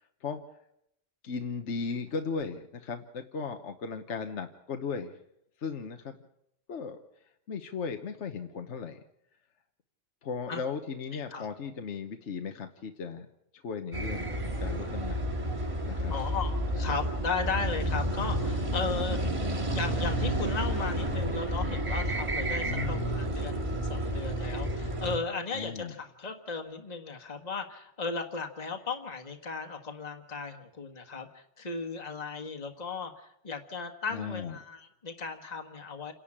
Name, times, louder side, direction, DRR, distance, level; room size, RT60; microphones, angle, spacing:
voice 1, 1.2-5.1 5.6-6.2 6.7-7.0 7.5-9.0 10.2-13.3 13.5-15.2 15.8-16.1 22.7-23.1 25.5-25.9 34.1-34.6, left 5 dB, 70° left, 6 dB, 1.4 m, -36 dB
voice 2, 11.1-11.5 16.1-19.2 19.7-36.1, left 4 dB, 35° left, 4 dB, 1.6 m, -36 dB
sound 1, 13.9-25.2, right 1 dB, 25° right, 2.6 m, -30 dB
28.5 x 11.5 x 8.7 m, 0.78 s
omnidirectional pair, 1.3 m